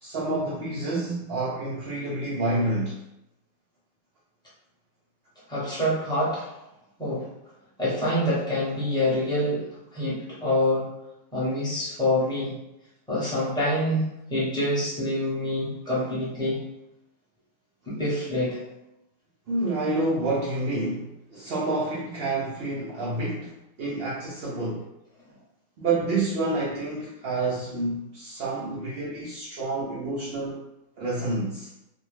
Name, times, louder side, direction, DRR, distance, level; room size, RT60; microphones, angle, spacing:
voice 1, 0.0-3.0 15.9-16.0 19.5-24.8 25.8-30.6 31.0-31.7, right 2 dB, 85° right, -6 dB, 0.5 m, -28 dB
voice 2, 5.5-6.5 7.0-7.2 7.8-9.6 9.9-10.9 11.3-12.5 13.1-16.6 17.9-18.6, left 1 dB, 5° left, -8 dB, 0.5 m, -26 dB
2.5 x 2.1 x 3.1 m, 0.84 s
omnidirectional pair, 1.6 m